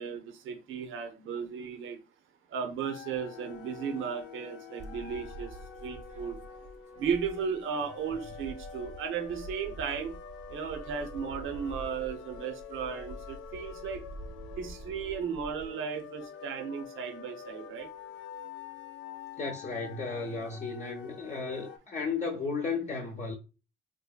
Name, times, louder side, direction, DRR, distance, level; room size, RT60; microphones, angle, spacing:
voice 1, 0.0-2.0 2.5-6.4 7.0-10.2 10.5-14.0 14.6-17.9, right 6 dB, 80° right, 0.8 m, -35 dB
sound 1, 2.8-21.8, left 7 dB, 80° left, 0.5 m, -47 dB
sound 2, 4.8-7.7 8.0-15.7, right 1 dB, 35° right, 0.6 m, -47 dB
voice 2, 19.4-23.4, left 4 dB, 35° left, 0.7 m, -34 dB
4.2 x 2.6 x 2.3 m
cardioid pair, 90°, 20 cm